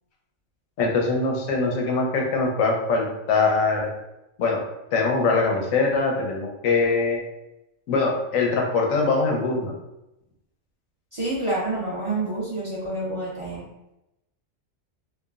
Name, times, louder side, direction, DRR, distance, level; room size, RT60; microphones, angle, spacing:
voice 1, 0.8-3.9 4.4-4.6 4.9-7.2 7.9-9.7, left 3 dB, 90° left, 0 dB, 1.0 m, -22 dB
voice 2, 11.1-13.6, right 2 dB, 50° right, -7 dB, 0.3 m, -28 dB
3.0 x 2.2 x 2.3 m, 0.90 s
omnidirectional pair, 1.4 m